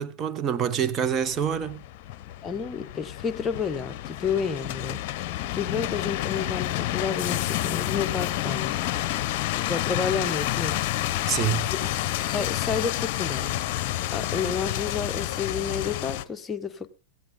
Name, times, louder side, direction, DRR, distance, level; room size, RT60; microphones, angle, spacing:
voice 1, 0.0-1.8 11.3-11.7, right 8 dB, 30° right, 1.2 m, -26 dB
sound 1, 1.0-16.3, left 14 dB, 50° left, 0.9 m, -29 dB
voice 2, 2.4-5.0 5.5-8.7 9.6-10.8 11.7-11.9 12.3-13.5 14.1-16.9, left 6 dB, 20° left, 1.2 m, -30 dB
17.0 x 14.0 x 3.9 m
hypercardioid pair, 115°, 0 cm